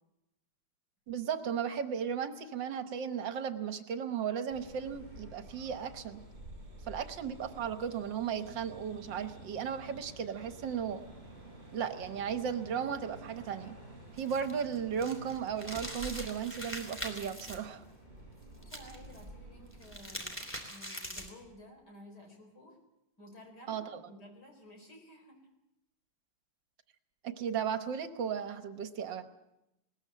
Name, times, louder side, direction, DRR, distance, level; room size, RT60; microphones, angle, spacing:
voice 1, 1.1-6.2 6.9-11.0 11.7-13.8 14.2-17.8 23.7-24.0 27.2-29.2, right 7 dB, 75° right, 9 dB, 1.9 m, -35 dB
sound 1, 4.5-20.1, right 1 dB, 30° right, 6.5 m, -50 dB
sound 2, 14.1-17.6 18.6-19.2 19.7-21.4, equal, 5° left, 3.2 m, -42 dB
voice 2, 18.6-22.8 23.2-25.4, left 1 dB, 60° left, 3 dB, 4.8 m, -54 dB
20.5 x 18.5 x 7.6 m, 0.90 s
omnidirectional pair, 2.0 m